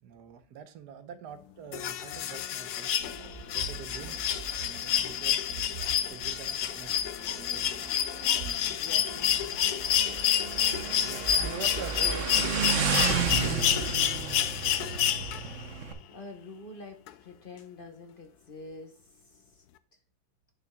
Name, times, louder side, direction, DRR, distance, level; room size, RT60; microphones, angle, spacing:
voice 1, 0.0-2.9 3.5-4.2 4.5-5.4 6.1-7.1 7.5-7.8 10.8-14.1, right 7 dB, 85° right, 10 dB, 1.4 m, -45 dB
sound 1, 1.7-15.6 17.1-17.2, left 10 dB, 75° left, 1.1 m, -29 dB
Motorcycle, 3.0-15.9, right 6 dB, 55° right, 1.2 m, -34 dB
voice 2, 8.8-9.9 15.4-18.9 19.6-19.7, left 3 dB, 40° left, 5 dB, 0.9 m, -47 dB
9.1 x 6.8 x 2.2 m, 0.41 s
omnidirectional pair, 1.7 m